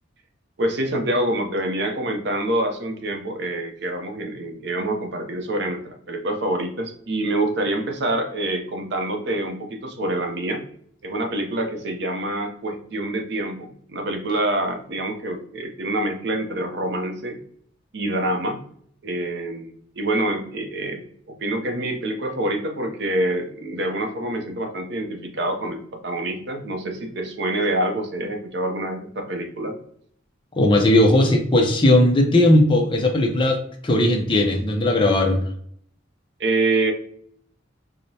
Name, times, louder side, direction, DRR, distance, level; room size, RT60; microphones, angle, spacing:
voice 1, 0.6-10.6 11.0-17.4 17.9-18.6 19.0-21.0 21.4-29.8 36.4-36.9, right 1 dB, 60° right, 4 dB, 0.6 m, -26 dB
voice 2, 30.6-33.6 33.8-35.4, left 1 dB, 25° left, 2 dB, 0.6 m, -17 dB
4.7 x 2.1 x 2.7 m, 0.62 s
head